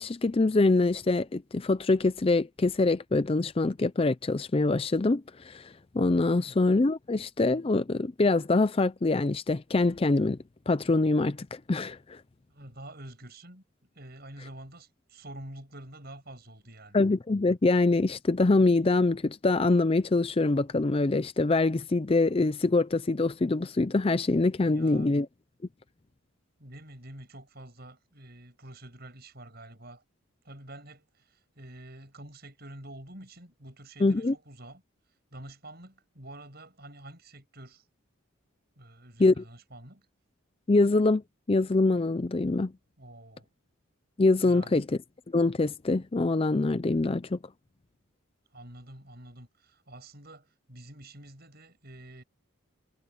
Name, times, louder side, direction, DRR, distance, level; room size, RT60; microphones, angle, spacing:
voice 1, 0.0-10.4 10.7-12.2 16.9-25.3 34.0-34.3 39.2-39.4 40.7-41.2 41.5-42.7 44.2-44.9 45.3-47.4, left 3 dB, 25° left, 0.4 m, -24 dB
voice 2, 12.5-13.6 13.9-17.0 24.6-25.1 26.6-30.0 30.4-34.8 35.3-37.8 38.8-40.1 43.0-43.5 44.4-44.8 48.5-52.2, right 1 dB, 45° right, 7.6 m, -47 dB
head